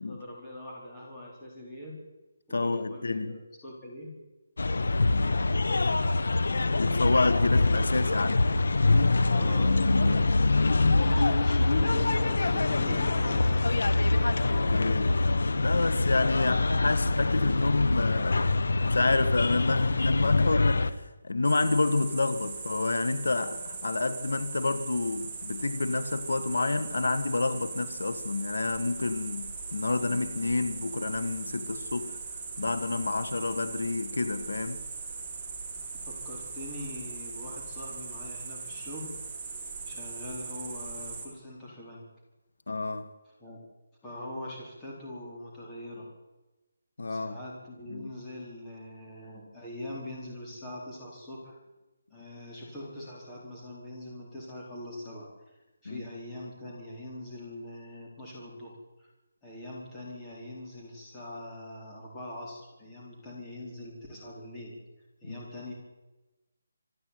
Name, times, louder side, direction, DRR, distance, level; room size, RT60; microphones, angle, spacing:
voice 1, 0.0-2.0 2.5-4.1 9.2-13.6 36.1-39.1 39.8-42.1 43.4-43.6 44.0-46.1 47.1-51.6 52.1-55.3 55.8-59.1 59.4-64.8 65.2-65.7, left 1 dB, 10° left, -5 dB, 4.4 m, -42 dB
voice 2, 2.5-3.4 4.8-5.4 6.8-8.5 14.4-15.2 15.5-18.4 18.9-32.2 32.6-34.8 42.7-43.1 47.0-47.4 47.9-48.1 55.9-56.1 65.3-65.4, left 3 dB, 85° left, 12 dB, 1.9 m, -29 dB
sound 1, 4.6-20.9, left 2 dB, 70° left, 1.4 m, -24 dB
sound 2, 21.4-41.3, right 4 dB, 15° right, 3.1 m, -39 dB
26.0 x 11.0 x 9.5 m, 1.1 s
hypercardioid pair, 175°, 0 cm